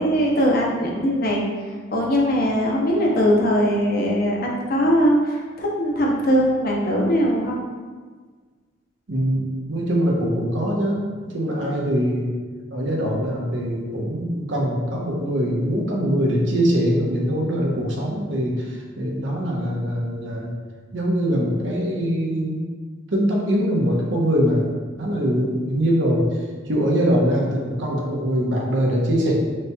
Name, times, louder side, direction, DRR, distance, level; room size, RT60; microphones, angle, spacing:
voice 1, 0.0-1.4 1.9-7.6, equal, 50° left, -2 dB, 0.7 m, -20 dB
voice 2, 9.1-12.3 12.7-20.5 20.9-22.6 23.1-24.7 25.0-26.2 26.7-29.3, equal, 80° right, -2 dB, 0.9 m, -22 dB
6.1 x 2.9 x 2.3 m, 1.5 s
head